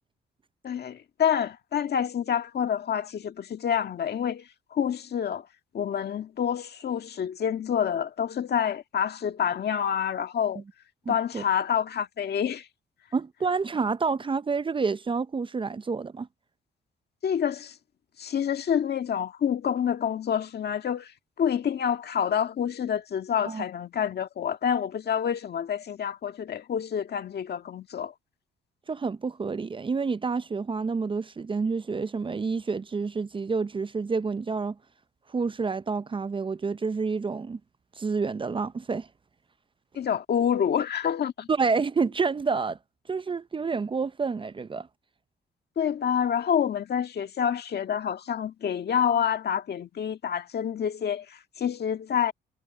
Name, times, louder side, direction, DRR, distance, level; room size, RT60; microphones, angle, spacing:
voice 1, 0.6-5.5 5.7-10.6 11.1-12.7 17.2-17.8 18.2-21.1 21.4-28.1 40.0-41.5 45.8-52.3, left 8 dB, 55° left, 1.8 m, -27 dB
voice 2, 11.1-11.4 13.1-16.3 23.5-23.6 28.9-34.8 35.3-37.6 38.0-39.1 41.5-42.8 43.1-44.9, right 4 dB, 25° right, 0.6 m, -28 dB
cardioid pair, 90°, 20 cm